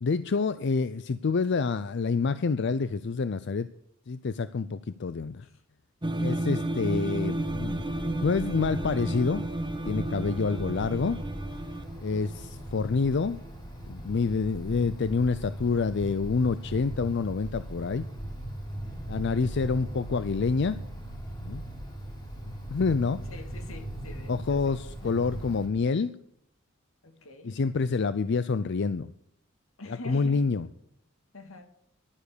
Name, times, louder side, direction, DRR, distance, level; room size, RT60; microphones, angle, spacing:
voice 1, 0.0-3.7 4.1-5.4 6.2-7.8 8.2-9.5 9.9-11.2 12.0-13.4 13.9-18.1 19.1-20.8 21.4-21.6 22.5-23.2 24.3-26.1 27.4-29.1 29.9-30.7, left 4 dB, 60° left, 14 dB, 0.5 m, -27 dB
sound 1, 6.0-13.7, right 1 dB, 20° right, 1.1 m, -33 dB
Wind, 7.3-25.7, right 1 dB, 20° left, 4.6 m, -39 dB
voice 2, 23.3-25.1 27.0-27.6 29.8-30.4 31.3-31.7, left 2 dB, 85° left, 7 dB, 2.1 m, -45 dB
11.5 x 9.6 x 6.8 m, 0.71 s
head